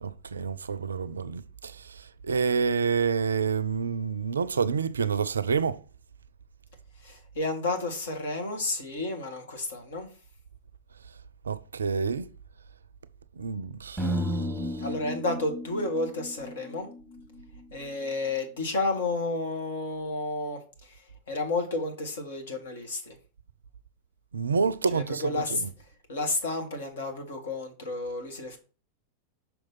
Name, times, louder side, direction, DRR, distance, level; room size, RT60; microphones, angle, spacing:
voice 1, 0.0-5.8 11.5-12.3 13.4-14.5 24.3-25.7, right 5 dB, 70° right, 0.4 m, -28 dB
voice 2, 7.0-10.1 14.8-16.9 17.7-21.0 21.3-23.2 24.9-25.6 26.1-28.6, left 2 dB, 60° left, 1.7 m, -31 dB
sound 1, 14.0-18.1, equal, 5° left, 1.4 m, -34 dB
6.1 x 4.5 x 4.1 m
figure-of-eight pair, 90°, 0 cm